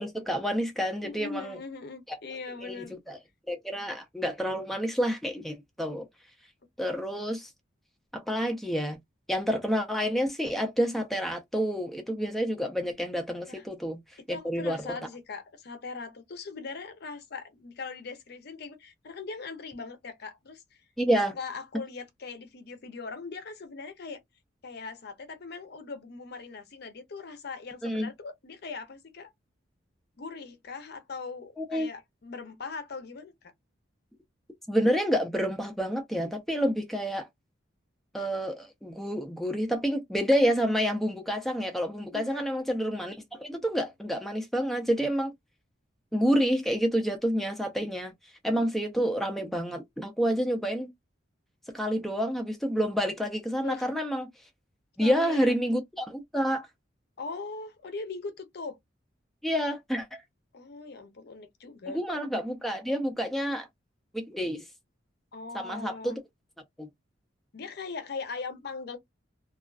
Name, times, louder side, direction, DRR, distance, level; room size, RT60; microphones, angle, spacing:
voice 1, 0.0-1.6 2.1-2.2 2.6-3.2 3.5-6.0 6.8-7.5 8.1-9.0 9.3-14.0 14.3-14.8 21.0-21.3 27.8-28.1 31.6-31.9 34.7-37.3 38.1-45.3 46.1-48.1 48.4-50.9 51.7-54.3 55.0-56.7 59.4-60.2 61.9-63.7 64.1-64.6 65.5-66.2 66.8-66.9, equal, ahead, 0.4 m, -28 dB
voice 2, 1.0-3.0 13.5-13.6 14.3-20.8 21.3-24.2 24.6-29.3 30.2-33.5 42.1-42.5 53.6-53.9 55.0-55.6 57.2-58.8 60.5-62.0 65.3-66.2 67.5-69.0, left 4 dB, 55° left, 0.6 m, -40 dB
2.3 x 2.2 x 2.3 m
head